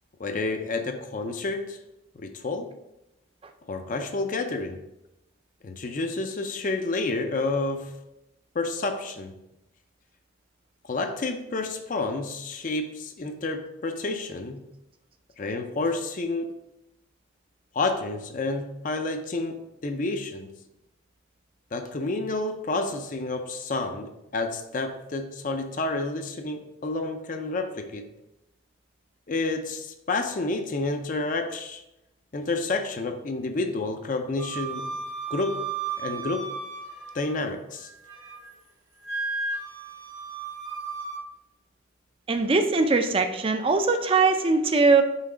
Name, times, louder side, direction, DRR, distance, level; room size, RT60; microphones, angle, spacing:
voice 1, 0.2-1.8 2.2-2.7 3.7-4.8 5.6-7.9 8.5-9.4 10.8-14.6 15.4-16.5 17.7-20.5 21.7-28.1 29.3-31.8 32.3-34.9 35.3-35.6 36.0-36.5 37.1-37.9, left 3 dB, 40° left, 6 dB, 0.5 m, -29 dB
Wind instrument woodwind instrument, 34.4-37.4 37.8-38.5 39.0-41.2, right 4 dB, 70° right, 1.8 m, -34 dB
voice 2, 42.3-45.0, right 4 dB, 25° right, 7 dB, 0.4 m, -21 dB
5.7 x 3.5 x 4.9 m, 0.92 s
head